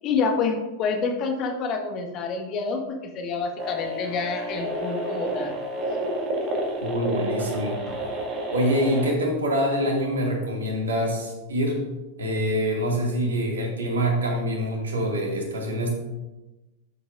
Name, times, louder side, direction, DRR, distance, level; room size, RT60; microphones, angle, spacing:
voice 1, 0.0-5.5, left 4 dB, 35° left, 3 dB, 1.5 m, -28 dB
sound 1, 3.6-9.1, right 1 dB, 30° right, 2.1 m, -30 dB
voice 2, 6.8-7.8 8.5-11.8 12.2-15.9, equal, 70° right, 0 dB, 2.3 m, -25 dB
12.0 x 7.7 x 2.6 m, 1.1 s
figure-of-eight pair, 90°, 0 cm